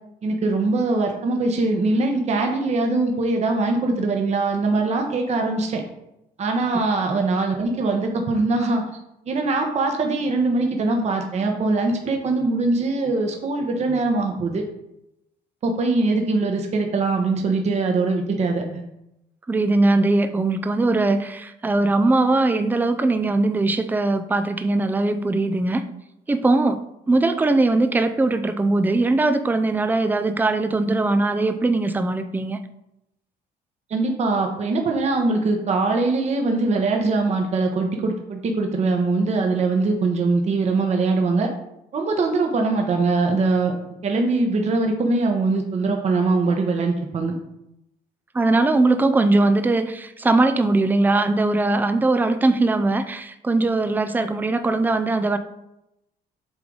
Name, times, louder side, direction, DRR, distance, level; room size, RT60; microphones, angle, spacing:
voice 1, 0.2-5.8 6.4-8.8 9.3-14.6 15.6-18.8 33.9-41.5 41.9-43.7 44.0-47.3, right 3 dB, 40° right, 3 dB, 1.1 m, -22 dB
voice 2, 19.5-25.8 26.3-26.8 27.1-32.6 48.3-55.4, right 2 dB, 10° right, 9 dB, 0.5 m, -20 dB
8.0 x 3.3 x 4.0 m, 0.84 s
cardioid pair, 110°, 17 cm